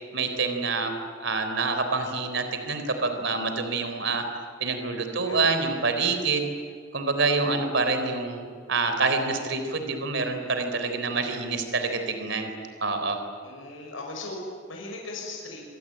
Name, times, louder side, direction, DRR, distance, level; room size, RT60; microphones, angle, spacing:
voice 1, 0.1-0.9 1.2-4.2 4.6-6.5 6.9-12.5 12.8-13.2, right 3 dB, 65° right, 7 dB, 4.0 m, -27 dB
voice 2, 5.0-5.7 13.4-15.7, left 2 dB, 85° left, -1 dB, 6.4 m, -38 dB
26.0 x 25.5 x 9.0 m, 2.1 s
head